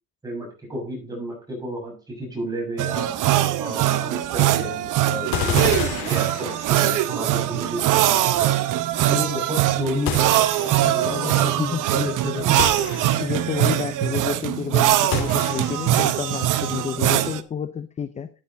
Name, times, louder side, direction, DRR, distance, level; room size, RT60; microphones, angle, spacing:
voice 1, 0.2-3.1 3.6-8.5 9.1-12.4 12.7-12.8, equal, 10° right, -1 dB, 6.1 m, -31 dB
sound 1, 2.8-17.4, right 13 dB, 65° right, 1.0 m, -22 dB
sound 2, 5.3-7.0 10.1-10.9 12.6-13.5 15.1-16.0, left 7 dB, 90° left, 2.6 m, -29 dB
voice 2, 10.8-11.8 12.4-12.6 13.2-18.3, left 7 dB, 20° left, 13 dB, 0.5 m, -30 dB
12.5 x 8.9 x 3.9 m, 0.36 s
cardioid pair, 160°, 34 cm